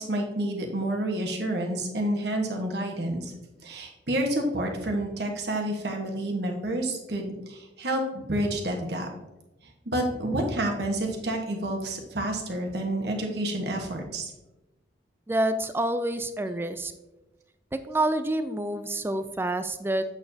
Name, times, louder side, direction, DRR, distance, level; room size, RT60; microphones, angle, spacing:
voice 1, 0.0-3.3 3.6-9.1 9.8-14.3, right 1 dB, 60° right, 2 dB, 1.3 m, -29 dB
voice 2, 15.3-16.9 17.9-20.1, right 1 dB, 15° right, 10 dB, 0.4 m, -27 dB
7.8 x 6.8 x 2.8 m, 1.0 s
head